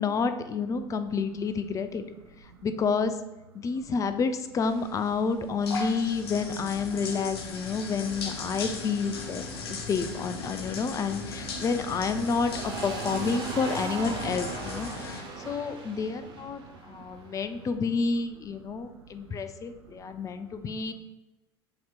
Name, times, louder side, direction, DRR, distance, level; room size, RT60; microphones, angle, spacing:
voice 1, 0.0-2.0 2.6-3.1 3.5-16.6 16.9-20.9, left 5 dB, 25° left, 10 dB, 0.4 m, -29 dB
voice 2, 1.8-2.7 3.6-3.8 5.6-6.1 7.7-8.6 9.4-9.9 10.5-10.8 11.2-11.3 11.5-11.7 14.7-15.5 15.9-17.2 17.5-17.7 18.6-20.9, right 6 dB, 80° right, 4 dB, 0.6 m, -53 dB
sound 1, 4.5-15.2, left 4 dB, 75° left, 0.6 m, -38 dB
sound 2, 8.1-17.7, right 4 dB, 40° right, 1.0 m, -41 dB
7.2 x 2.8 x 2.3 m, 1.0 s
hypercardioid pair, 75°, 13 cm